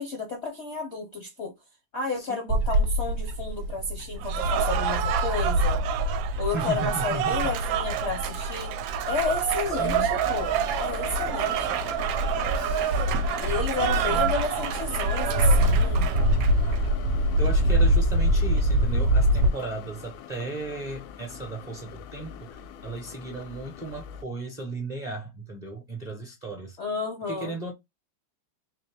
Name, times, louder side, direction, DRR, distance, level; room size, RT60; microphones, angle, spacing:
voice 1, 0.0-1.5 1.9-5.8 6.4-8.7 9.1-11.8 13.4-16.1 26.8-27.5, left 4 dB, 55° left, 0.7 m, -32 dB
voice 2, 2.2-2.5 6.5-7.4 9.8-10.1 13.9-14.3 17.4-26.8 27.3-27.7, right 2 dB, 35° right, 0.7 m, -35 dB
Bird / Wind, 2.5-19.5, equal, 60° right, 1.1 m, -25 dB
Cheering / Applause, 4.2-16.8, right 12 dB, 80° right, 1.3 m, -29 dB
sound 1, 9.7-24.2, left 10 dB, 90° left, 1.4 m, -41 dB
3.9 x 2.7 x 3.2 m
omnidirectional pair, 2.1 m